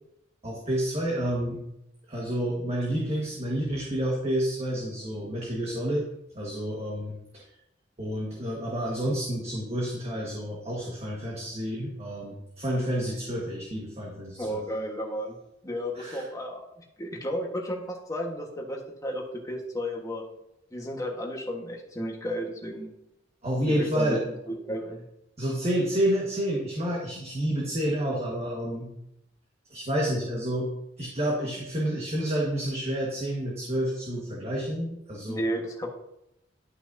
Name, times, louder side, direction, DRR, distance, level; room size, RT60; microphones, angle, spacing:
voice 1, 0.4-1.6 2.1-6.0 6.3-7.4 8.0-14.6 15.9-16.2 23.4-24.2 25.4-28.9 29.7-30.7 31.0-35.4, equal, 35° right, -4 dB, 1.5 m, -29 dB
voice 2, 14.4-15.3 15.6-16.6 17.0-20.2 20.7-22.9 23.8-25.0 35.3-35.9, equal, 20° left, 0 dB, 1.3 m, -33 dB
11.0 x 5.9 x 2.7 m, 0.82 s
head